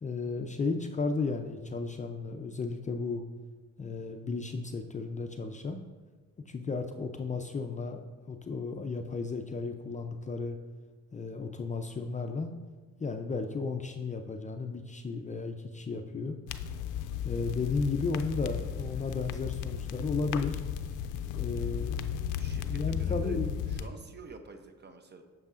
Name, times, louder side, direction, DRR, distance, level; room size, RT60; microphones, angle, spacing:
voice 1, 0.0-3.2 3.8-5.8 6.5-8.0 8.3-10.6 11.1-12.5 13.0-16.3 17.2-20.6 21.3-22.0 22.7-23.6, left 4 dB, 25° left, 5 dB, 0.4 m, -34 dB
sound 1, 16.5-23.9, left 9 dB, 85° left, 0.5 m, -34 dB
voice 2, 22.4-23.4 23.7-25.2, right 4 dB, 35° right, 6 dB, 0.7 m, -48 dB
8.0 x 6.8 x 2.5 m, 1.3 s
cardioid pair, 90°, 30 cm